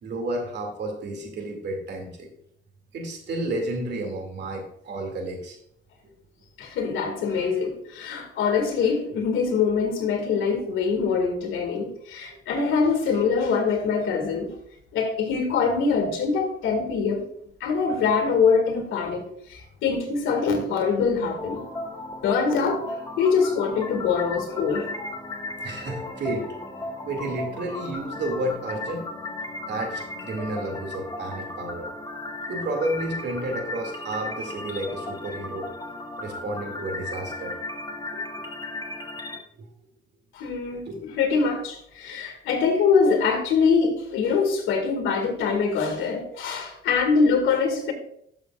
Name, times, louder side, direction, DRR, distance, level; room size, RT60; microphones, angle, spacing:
voice 1, 0.0-2.3 2.9-5.6 6.0-6.1 9.1-9.2 25.6-26.6 27.0-29.1 29.7-31.9 32.5-35.7 36.2-37.5 38.1-38.4 39.6-39.7 40.9-41.1, right 1 dB, 60° right, 2.4 m, -31 dB
voice 2, 6.6-14.5 14.9-17.3 17.6-21.6 22.2-24.9 40.3-47.9, left 5 dB, 85° left, 2.0 m, -24 dB
sound 1, 21.4-39.4, left 2 dB, 20° left, 1.6 m, -35 dB
12.0 x 6.8 x 2.4 m
cardioid pair, 90°, 20 cm